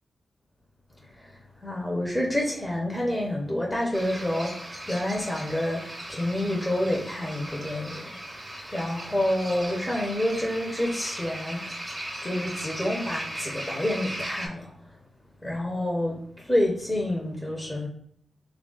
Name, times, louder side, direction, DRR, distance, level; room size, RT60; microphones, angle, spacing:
voice 1, 1.1-11.8 12.2-14.9 15.4-17.9, left 1 dB, 10° left, 1.0 m, -28 dB
sound 1, 3.9-14.5, right 1 dB, 15° right, 1.1 m, -38 dB
3.2 x 2.5 x 3.8 m
cardioid pair, 60°, 0 cm